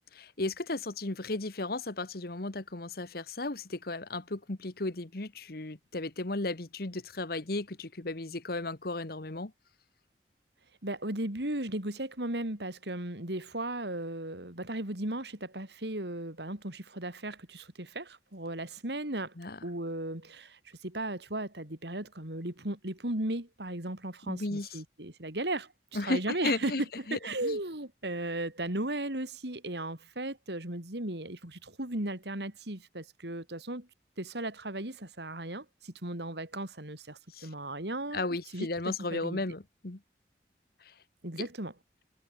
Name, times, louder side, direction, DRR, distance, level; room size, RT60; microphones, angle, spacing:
voice 1, 0.1-9.5 19.4-19.6 24.3-24.7 25.9-26.8 27.1-27.6 37.3-37.5 38.1-40.0, left 2 dB, 55° left, 1.4 m, -35 dB
voice 2, 10.8-19.3 19.6-26.7 27.1-33.9 34.2-38.3 38.5-39.4 41.2-41.7, right 1 dB, 70° right, 3.8 m, -36 dB
head